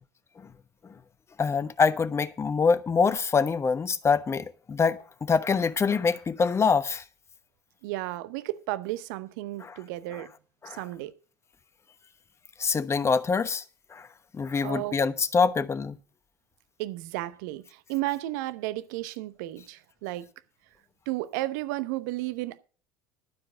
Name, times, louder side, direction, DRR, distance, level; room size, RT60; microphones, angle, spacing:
voice 1, 1.4-7.0 9.6-9.7 10.6-10.8 12.6-13.6 13.9-14.1 14.3-16.0, left 5 dB, 25° left, 1.0 m, -25 dB
voice 2, 7.8-10.3 10.7-11.1 14.6-15.0 16.8-20.3 21.1-22.6, right 17 dB, 70° right, 0.9 m, -33 dB
12.5 x 4.8 x 8.2 m
hypercardioid pair, 70°, 10 cm